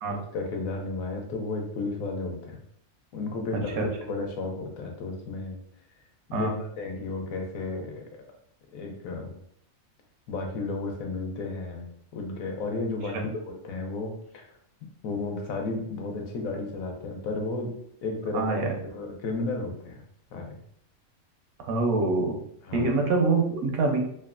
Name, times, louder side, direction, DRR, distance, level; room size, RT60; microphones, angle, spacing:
voice 1, 0.1-2.6 3.1-5.6 6.3-6.5 6.8-8.0 8.7-9.3 10.3-13.2 13.5-14.5 15.0-17.7 18.0-20.0 20.3-20.6 22.6-22.9, left 3 dB, 75° left, 2 dB, 1.0 m, -33 dB
voice 2, 3.5-3.9 6.3-6.6 13.1-13.2 18.3-18.8 21.7-22.4 22.7-24.0, right 3 dB, 85° right, 2 dB, 1.1 m, -25 dB
3.0 x 2.1 x 2.3 m, 0.69 s
omnidirectional pair, 1.5 m